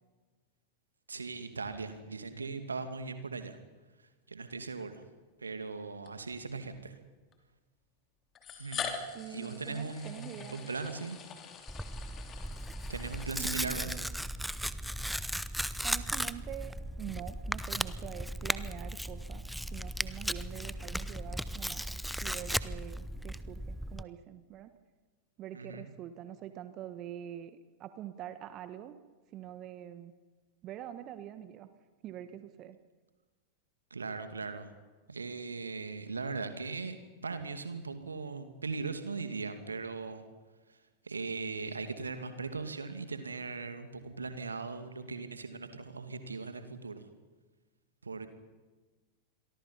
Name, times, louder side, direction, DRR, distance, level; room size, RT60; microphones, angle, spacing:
voice 1, 1.1-3.6 4.3-5.0 5.4-6.9 8.6-8.9 9.3-11.2 12.9-14.0 25.5-25.9 33.9-34.7 35.1-40.2 41.0-47.1 48.0-48.3, right 4 dB, 75° right, 9 dB, 2.3 m, -39 dB
sound 1, 4.9-5.0 6.1-6.2 7.3-7.4 8.3-14.3, left 6 dB, 25° left, 3.0 m, -44 dB
voice 2, 9.1-10.7 13.4-14.0 15.8-21.8 22.2-24.7 25.4-29.0 29.3-30.1 30.6-31.7 32.0-32.8, right 11 dB, 35° right, 11 dB, 1.4 m, -45 dB
Tearing, 11.7-24.0, equal, ahead, 0.8 m, -36 dB
28.0 x 23.0 x 5.6 m, 1.3 s
figure-of-eight pair, 90°, 0 cm